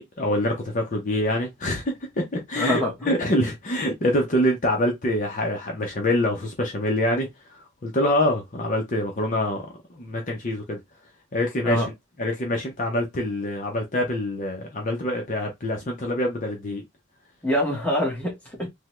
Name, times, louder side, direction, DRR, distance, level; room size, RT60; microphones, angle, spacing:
voice 1, 0.0-1.8 2.2-10.8 11.3-11.8 12.2-16.8, left 1 dB, 40° left, 0.6 m, -25 dB
voice 2, 2.6-3.1 11.6-11.9 17.4-18.7, left 1 dB, 5° left, 1.0 m, -25 dB
3.4 x 2.1 x 2.9 m
head